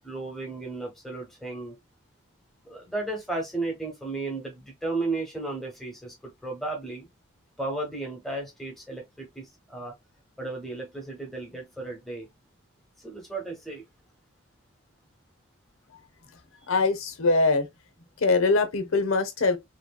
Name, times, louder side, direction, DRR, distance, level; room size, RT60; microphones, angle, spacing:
voice 1, 0.0-1.8 2.6-6.1 6.4-7.1 7.6-9.9 10.4-12.3 13.0-13.8, right 2 dB, ahead, 1.0 m, -34 dB
voice 2, 16.7-17.7 18.2-19.6, left 3 dB, 80° left, 0.7 m, -23 dB
2.8 x 2.7 x 2.2 m
head